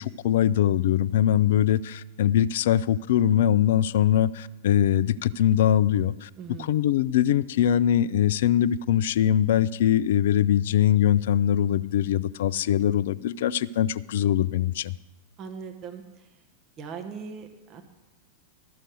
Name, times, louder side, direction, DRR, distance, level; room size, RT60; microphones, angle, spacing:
voice 1, 0.0-6.3 6.6-14.9, left 10 dB, 55° left, 19 dB, 0.3 m, -22 dB
voice 2, 6.4-6.9 15.4-16.3 16.8-17.8, right 6 dB, 35° right, 5 dB, 1.0 m, -40 dB
12.5 x 6.5 x 6.3 m, 1.1 s
figure-of-eight pair, 90°, 0 cm